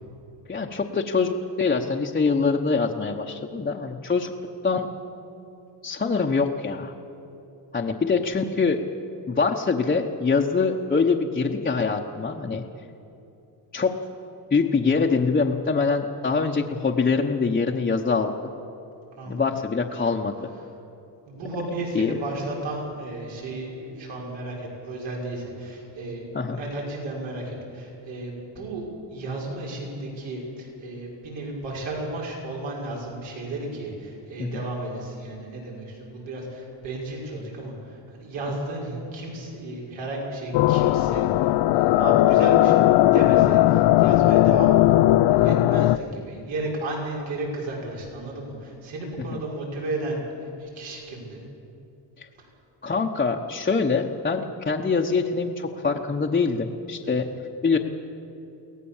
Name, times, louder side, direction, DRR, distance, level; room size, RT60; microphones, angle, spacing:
voice 1, 0.5-4.3 4.6-4.9 5.8-6.9 7.7-8.8 9.3-12.6 13.7-13.9 14.5-18.3 19.3-20.5 21.9-22.1 26.3-26.6 34.4-34.5 49.3-49.4 52.2-52.3 52.8-57.3 57.6-57.8, left 4 dB, 20° left, -1 dB, 0.9 m, -24 dB
voice 2, 21.3-28.8 29.1-45.0 45.3-50.2 50.6-51.4 52.4-52.5 57.0-57.3, right 2 dB, 80° right, -2 dB, 5.9 m, -33 dB
sound 1, 40.5-46.0, left 15 dB, 70° left, 0.6 m, -18 dB
23.5 x 18.0 x 7.3 m, 2.9 s
cardioid pair, 135°, 44 cm